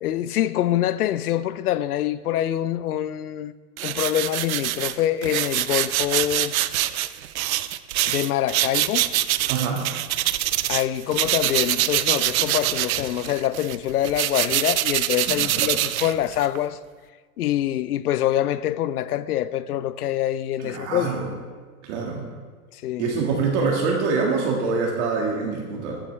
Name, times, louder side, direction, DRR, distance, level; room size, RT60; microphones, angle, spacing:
voice 1, 0.0-3.5 3.8-6.6 8.1-9.1 10.7-16.8 17.4-21.1 22.7-23.1, left 12 dB, 80° left, 0.6 m, -25 dB
sound 1, 3.8-10.9 11.1-16.6, right 14 dB, 65° right, 0.6 m, -25 dB
voice 2, 9.5-9.9 15.3-15.7 20.6-21.3 21.8-22.3 23.0-26.0, right 4 dB, 50° right, 1.9 m, -25 dB
14.5 x 8.8 x 3.3 m
hypercardioid pair, 140°, 45 cm